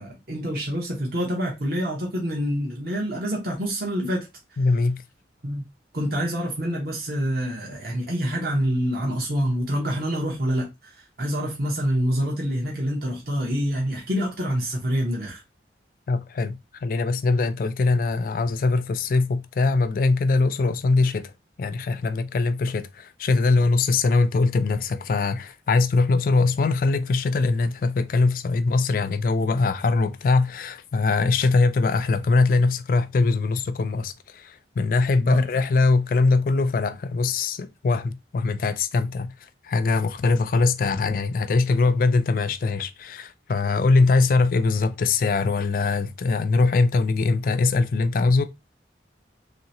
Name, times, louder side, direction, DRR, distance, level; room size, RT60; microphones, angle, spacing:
voice 1, 0.0-4.3 5.4-5.6 5.9-15.4 35.2-35.4, equal, 55° right, 0.9 m, -26 dB
voice 2, 4.6-5.0 16.1-21.3 21.6-39.3 39.6-48.4, left 3 dB, 50° left, 0.3 m, -22 dB
3.1 x 2.8 x 2.8 m
head